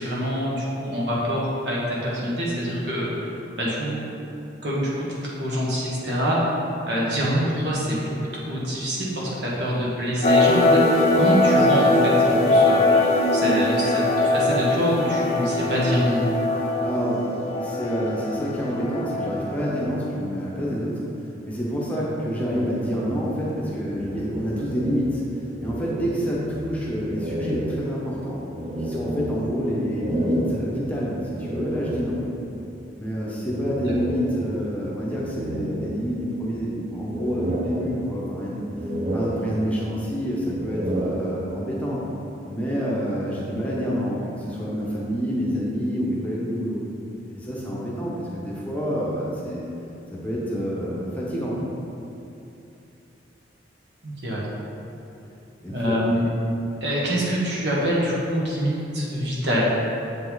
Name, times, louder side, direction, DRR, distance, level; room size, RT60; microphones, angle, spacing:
voice 1, 0.0-3.3 3.6-4.0 4.6-6.4 6.9-13.1 13.3-16.2 54.0-54.4 55.7-56.3 56.8-59.7, equal, 60° right, -5 dB, 1.5 m, -25 dB
sound 1, 10.2-19.8, left 2 dB, 35° left, 0.6 m, -21 dB
voice 2, 16.8-17.3 17.6-21.0 21.4-25.2 25.6-28.4 28.8-32.2 33.0-38.7 39.1-42.0 42.4-46.8 47.3-49.7 50.1-51.6 55.6-56.0, equal, 10° left, -5 dB, 0.9 m, -27 dB
sound 2, 22.5-25.3 25.6-26.7 27.1-32.5 33.5-34.8 35.2-36.5 36.9-38.4 38.7-40.0 40.5-41.8, equal, 35° right, 0.6 m, -31 dB
7.4 x 5.4 x 4.0 m, 2.8 s
head